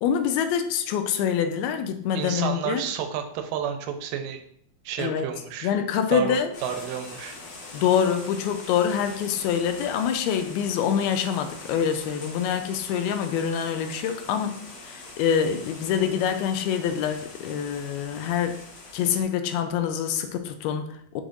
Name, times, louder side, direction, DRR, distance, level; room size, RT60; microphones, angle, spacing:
voice 1, 0.0-2.9 5.0-5.3 5.6-6.5 7.7-14.6 14.9-18.6 18.9-21.2, left 8 dB, 90° left, 8 dB, 2.5 m, -25 dB
voice 2, 2.1-4.4 4.9-5.7 6.1-7.4, right 8 dB, 75° right, 6 dB, 2.1 m, -31 dB
sound 1, 6.5-19.2, left 3 dB, 60° left, 2.1 m, -43 dB
6.4 x 6.2 x 2.6 m, 0.67 s
omnidirectional pair, 4.4 m